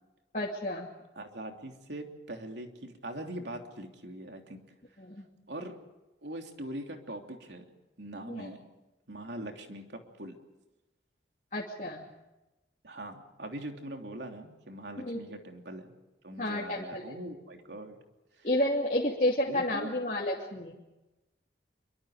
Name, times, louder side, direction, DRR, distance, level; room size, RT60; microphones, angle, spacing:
voice 1, 0.3-0.9 5.0-5.2 8.3-8.5 11.5-12.0 15.1-15.2 16.4-17.0 18.4-20.8, left 1 dB, 45° left, -4 dB, 2.8 m, -30 dB
voice 2, 1.1-4.6 5.5-5.8 6.2-7.7 8.0-8.7 9.1-10.4 12.8-15.9 16.2-18.0 18.4-18.5 19.5-20.0, right 1 dB, 75° right, 3 dB, 3.1 m, -42 dB
26.5 x 24.0 x 5.1 m, 1.0 s
head